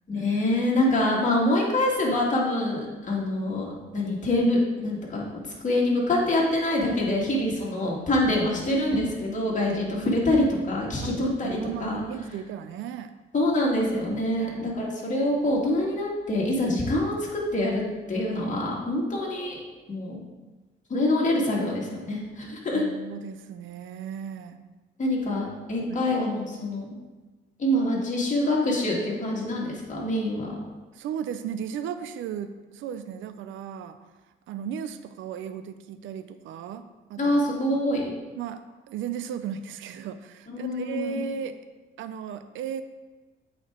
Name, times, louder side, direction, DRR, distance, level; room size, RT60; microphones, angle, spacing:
voice 1, 0.1-5.2 5.6-12.0 13.3-17.8 18.1-19.6 19.9-20.2 20.9-22.9 25.0-27.0 27.6-30.5 37.2-38.2 40.5-41.2, left 1 dB, 40° left, -3 dB, 2.1 m, -25 dB
voice 2, 11.0-13.1 22.7-24.6 25.3-25.4 25.9-26.0 30.9-34.0 34.5-37.4 37.7-37.8 38.4-41.6 42.0-42.8, right 8 dB, 80° right, 11 dB, 0.5 m, -36 dB
8.1 x 4.6 x 3.7 m, 1.2 s
cardioid pair, 90°, 20 cm